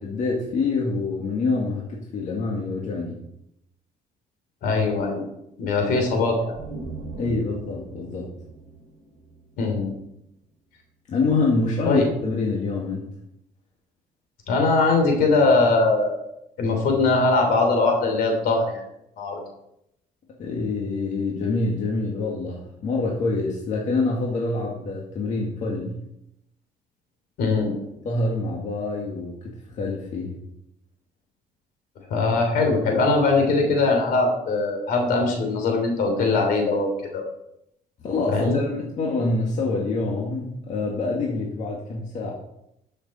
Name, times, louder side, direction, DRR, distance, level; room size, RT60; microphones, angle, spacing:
voice 1, 0.0-3.2 7.2-8.3 11.1-13.1 20.4-26.0 28.0-30.4 38.0-42.3, left 3 dB, 50° left, -2 dB, 1.9 m, -26 dB
voice 2, 4.6-5.2 5.6-6.6 9.6-9.9 11.8-12.1 14.5-16.2 16.6-18.8 19.2-19.4 27.4-27.7 32.1-36.9 37.1-37.2 38.3-38.6, left 3 dB, 75° left, 3 dB, 3.2 m, -21 dB
sound 1, 6.5-10.2, right 3 dB, 40° right, 4.5 m, -39 dB
13.0 x 6.6 x 4.2 m, 0.81 s
cardioid pair, 125°, 15 cm